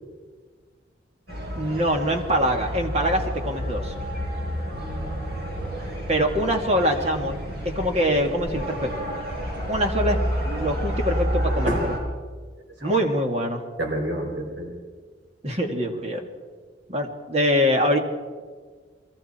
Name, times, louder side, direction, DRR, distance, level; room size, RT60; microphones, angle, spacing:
sound 1, 1.3-12.0, equal, 55° right, 5.3 m, -30 dB
voice 1, 1.6-3.9 6.1-7.4 7.6-9.1 9.7-11.9 12.8-13.6 15.4-16.3 16.9-18.0, equal, 35° right, 3 dB, 2.2 m, -24 dB
voice 2, 4.8-5.2 9.5-9.6 11.7-11.9 12.8-13.1 13.8-14.7, right 1 dB, 75° right, 1 dB, 4.2 m, -29 dB
29.5 x 22.0 x 4.5 m, 1.6 s
head